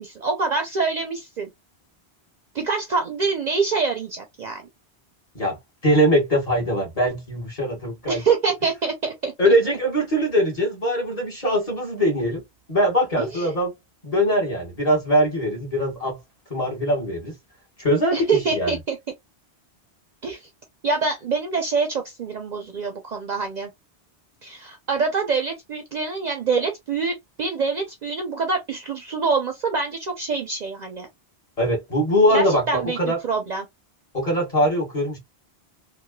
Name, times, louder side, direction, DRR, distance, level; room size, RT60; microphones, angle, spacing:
voice 1, 0.0-1.5 2.5-4.6 8.1-9.3 13.2-13.5 18.1-19.0 20.2-20.4 20.8-23.7 24.4-31.1 32.3-33.7, right 4 dB, 55° right, 0.5 m, -25 dB
voice 2, 5.8-8.2 9.4-12.4 12.7-13.7 14.0-16.2 16.5-17.3 17.8-18.8 31.6-33.2 34.1-35.2, equal, 35° left, 1.2 m, -22 dB
2.9 x 2.2 x 2.2 m
omnidirectional pair, 1.1 m